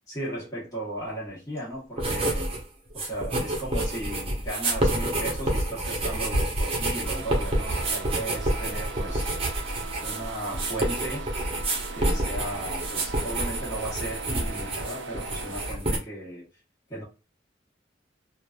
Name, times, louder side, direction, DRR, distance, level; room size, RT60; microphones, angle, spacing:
voice 1, 0.1-2.6 2.9-9.4 10.0-11.3 11.9-16.5 16.9-17.0, right 1 dB, 20° left, 1.1 m, -36 dB
sound 1, 2.0-2.6 2.9-16.0, right 1 dB, 30° right, 0.8 m, -28 dB
sound 2, 7.0-15.7, right 5 dB, 70° right, 0.4 m, -40 dB
3.0 x 2.5 x 2.3 m
head